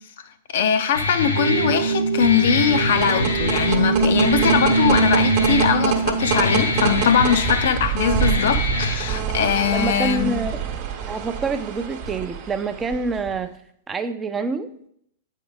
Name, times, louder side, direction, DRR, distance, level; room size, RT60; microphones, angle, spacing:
voice 1, 0.5-10.4, left 7 dB, 55° left, 0.5 m, -21 dB
Guitar, 0.9-8.9, left 2 dB, 75° left, 0.9 m, -25 dB
sound 1, 1.4-7.4, right 4 dB, 80° right, 0.5 m, -23 dB
sound 2, 2.6-13.4, right 7 dB, 45° right, 1.0 m, -27 dB
voice 2, 9.7-10.6 11.1-13.5 13.9-14.7, right 4 dB, 15° right, 0.5 m, -26 dB
8.4 x 4.5 x 3.8 m
figure-of-eight pair, 100°, 0 cm